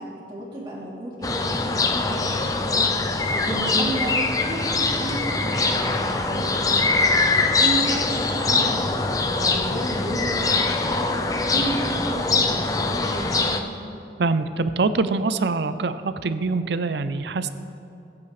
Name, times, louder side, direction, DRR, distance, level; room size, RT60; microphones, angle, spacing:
voice 1, 0.0-2.9 3.3-4.1 4.4-6.8 7.6-8.8 9.1-11.1 11.5-13.7, right 1 dB, 25° right, -7 dB, 3.0 m, -32 dB
sound 1, 1.2-13.6, left 3 dB, 20° left, 0.5 m, -23 dB
voice 2, 14.2-17.5, right 3 dB, 75° right, 12 dB, 0.5 m, -24 dB
20.0 x 8.3 x 3.3 m, 2.6 s
head